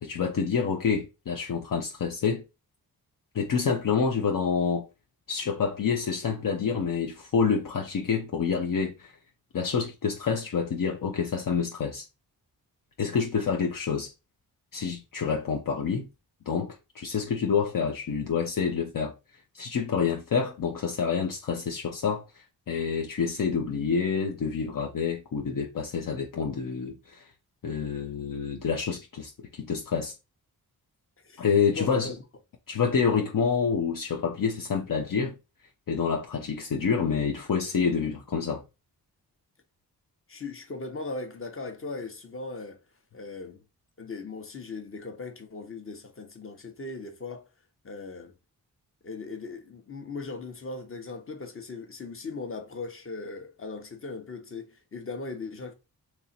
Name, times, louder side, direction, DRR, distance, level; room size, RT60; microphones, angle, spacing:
voice 1, 0.0-2.4 3.3-4.8 5.3-9.1 9.5-12.1 13.0-14.1 14.7-16.1 16.5-19.1 19.5-27.3 27.6-30.1 31.4-32.1 32.7-35.3 35.9-38.6, left 6 dB, 55° left, 0.7 m, -28 dB
voice 2, 31.7-32.2 40.3-42.8 43.1-43.6 44.0-47.5 47.8-48.3 49.0-55.7, left 3 dB, 35° left, 1.0 m, -38 dB
2.9 x 2.7 x 4.2 m
cardioid pair, 60°, 38 cm